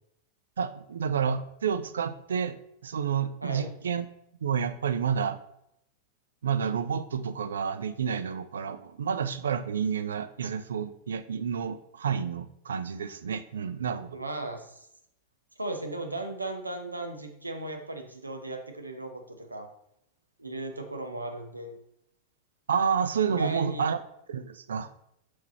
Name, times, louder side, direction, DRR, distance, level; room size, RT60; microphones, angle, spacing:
voice 1, 0.6-2.6 2.8-4.0 4.4-5.4 6.4-14.2 22.7-24.0 24.3-24.9, right 7 dB, 65° right, 12 dB, 0.4 m, -29 dB
voice 2, 3.4-3.7 14.1-14.9 15.6-19.7 20.4-21.8 23.3-23.9, right 2 dB, 80° right, 5 dB, 0.8 m, -36 dB
6.0 x 4.6 x 4.2 m, 0.76 s
figure-of-eight pair, 90°, 0 cm